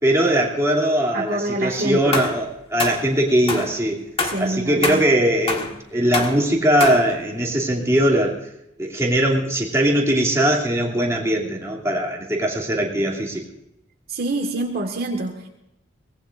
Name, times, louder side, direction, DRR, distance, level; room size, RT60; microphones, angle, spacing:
voice 1, 0.0-4.0 4.4-8.4 8.8-13.4, right 1 dB, 15° right, -3 dB, 2.9 m, -20 dB
voice 2, 1.1-2.2 4.2-5.0 14.1-15.5, right 2 dB, 50° right, 2 dB, 1.8 m, -26 dB
sound 1, 2.1-2.4 2.8-3.0 3.5-3.7 4.2-4.5 4.8-5.1 5.5-5.8 6.1-6.4 6.8-7.2, left 3 dB, 30° left, 1.8 m, -26 dB
24.0 x 19.0 x 2.6 m, 0.85 s
head